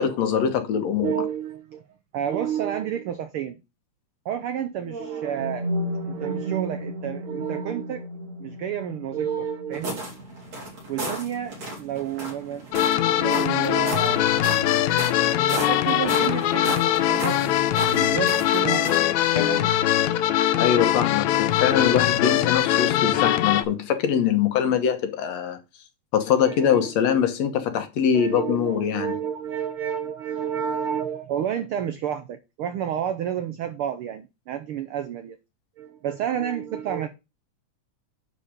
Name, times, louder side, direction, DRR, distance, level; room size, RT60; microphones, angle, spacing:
voice 1, 0.0-1.1 20.6-25.6 26.1-29.2, left 8 dB, 70° left, 2.2 m, -23 dB
voice 2, 1.0-1.8 2.1-3.6 4.2-5.7 6.0-8.1 8.4-10.2 10.9-12.7 13.2-15.0 15.5-17.6 17.8-18.9 19.3-19.7 26.4-26.9 28.1-35.4 35.8-37.1, right 9 dB, 75° right, 1.2 m, -30 dB
sound 1, 4.8-12.8, right 1 dB, 40° right, 1.1 m, -34 dB
sound 2, 9.7-19.1, right 1 dB, 60° right, 4.7 m, -35 dB
sound 3, 12.7-23.6, left 12 dB, 85° left, 2.0 m, -22 dB
10.5 x 4.2 x 5.1 m
omnidirectional pair, 3.4 m